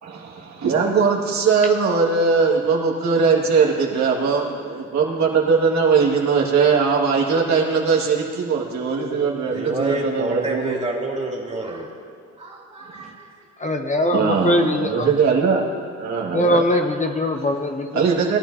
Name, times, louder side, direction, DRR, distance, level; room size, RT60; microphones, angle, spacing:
voice 1, 0.0-10.8 12.9-13.1 14.1-15.7 16.0-16.6 17.9-18.4, right 5 dB, 65° right, -2 dB, 2.0 m, -20 dB
voice 2, 9.4-11.9 12.4-13.3, right 2 dB, 20° right, -3 dB, 2.6 m, -28 dB
voice 3, 13.6-15.1 16.3-18.0, left 1 dB, 25° left, 4 dB, 0.8 m, -21 dB
19.0 x 10.5 x 2.7 m, 2.3 s
cardioid pair, 90°, 30 cm